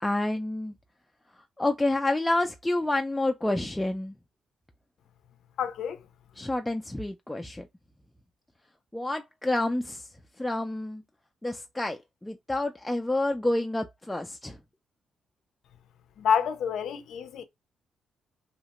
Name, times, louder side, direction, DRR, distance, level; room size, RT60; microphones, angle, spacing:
voice 1, 0.0-0.7 1.6-4.1 6.4-7.7 8.9-10.1 10.4-11.0 11.4-14.6, left 2 dB, 10° left, 0.3 m, -28 dB
voice 2, 5.6-6.0 16.2-17.4, left 7 dB, 80° left, 0.4 m, -28 dB
2.8 x 2.0 x 2.9 m
cardioid pair, 100°, 0 cm